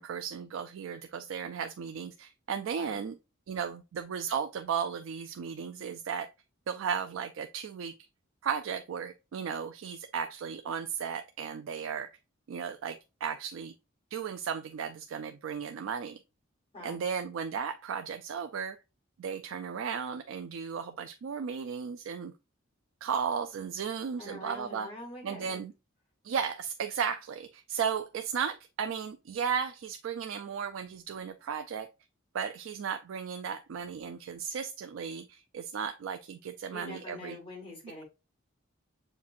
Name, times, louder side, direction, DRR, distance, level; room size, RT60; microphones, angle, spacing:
voice 1, 0.0-3.2 3.5-6.3 6.7-7.9 8.4-12.1 12.5-13.7 14.1-16.2 16.8-18.8 19.2-22.3 23.0-24.9 25.2-25.7 26.2-31.9 32.3-37.4, right 7 dB, 85° right, 0.4 m, -35 dB
voice 2, 24.2-25.6 36.7-38.0, left 1 dB, 30° left, 1.8 m, -44 dB
7.1 x 2.5 x 2.6 m
head